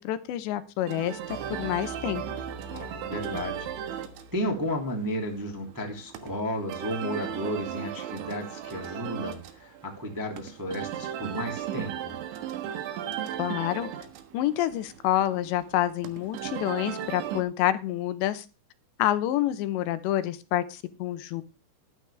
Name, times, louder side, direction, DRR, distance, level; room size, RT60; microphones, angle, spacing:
voice 1, 0.0-2.2 13.4-13.9 14.3-18.5 19.0-21.4, left 13 dB, 80° left, 12 dB, 3.0 m, -28 dB
sound 1, 0.8-17.4, right 10 dB, 85° right, 3.7 m, -37 dB
sound 2, 1.3-4.9, right 1 dB, 45° right, 4.3 m, -44 dB
voice 2, 2.7-3.7 4.3-12.2, equal, 10° right, 1 dB, 1.2 m, -33 dB
12.5 x 12.5 x 3.4 m, 0.28 s
omnidirectional pair, 5.2 m